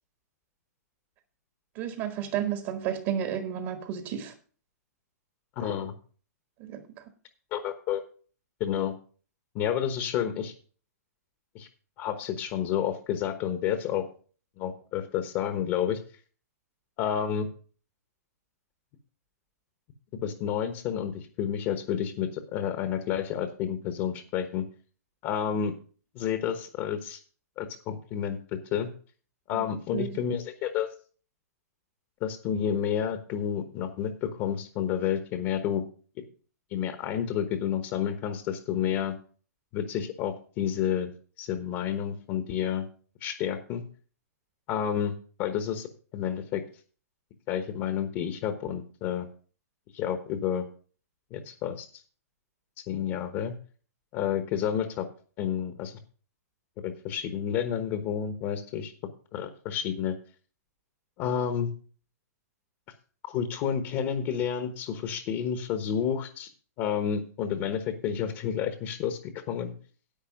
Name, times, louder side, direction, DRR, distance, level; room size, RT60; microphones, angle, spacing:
voice 1, 1.7-4.3 5.6-5.7 6.6-7.0 29.5-29.6 29.9-30.1, right 9 dB, 35° right, 8 dB, 1.3 m, -32 dB
voice 2, 5.6-5.9 7.5-8.0 8.6-8.9 9.5-10.5 11.5-11.7 12.0-14.1 14.6-16.0 17.0-17.5 20.2-24.6 25.2-25.7 26.1-27.2 27.6-28.4 28.7-28.9 29.5-30.9 32.2-35.8 36.7-39.1 39.7-41.1 41.4-42.9 43.2-43.8 44.7-45.9 46.1-46.6 47.5-49.3 49.9-50.6 51.3-52.0 52.9-53.5 54.1-55.1 55.4-55.9 56.8-58.9 59.3-60.1 61.2-61.7 63.2-66.5 66.8-69.7, left 9 dB, 30° left, 8 dB, 1.1 m, -30 dB
10.5 x 8.2 x 5.2 m, 0.41 s
hypercardioid pair, 155°, 9 cm